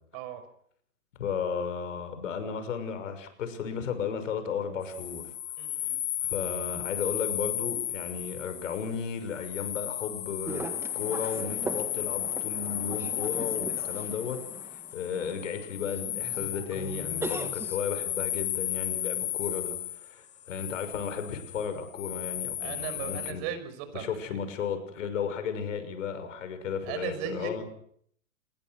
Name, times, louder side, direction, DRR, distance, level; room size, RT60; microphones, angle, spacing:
voice 1, 1.2-5.3 5.8-5.9 6.2-10.7 10.9-23.4 23.9-27.6, left 6 dB, 65° left, 10 dB, 6.1 m, -34 dB
sound 1, 4.8-23.3, left 13 dB, 20° left, 1.2 m, -34 dB
voice 2, 5.6-6.0 22.6-24.1 26.9-27.6, right 8 dB, 40° right, 10 dB, 5.7 m, -37 dB
sound 2, 10.5-17.8, right 3 dB, 5° right, 1.8 m, -40 dB
27.5 x 22.0 x 6.4 m, 0.66 s
hypercardioid pair, 135°, 41 cm